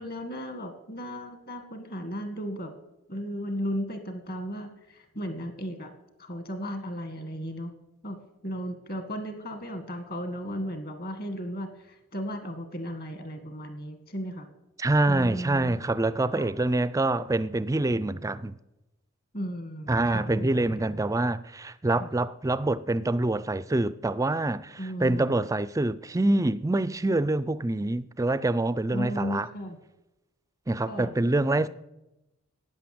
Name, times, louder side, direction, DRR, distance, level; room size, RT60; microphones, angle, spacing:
voice 1, 0.0-2.7 3.1-5.9 6.2-7.7 8.0-8.2 8.4-14.5 15.1-15.8 16.4-16.5 19.3-21.1 22.0-22.1 24.8-25.4 28.9-29.8 30.9-31.2, equal, 45° left, 1.9 m, -35 dB
voice 2, 14.8-18.5 19.9-29.5 30.7-31.7, right 2 dB, 15° right, 0.4 m, -26 dB
13.0 x 9.3 x 7.8 m
head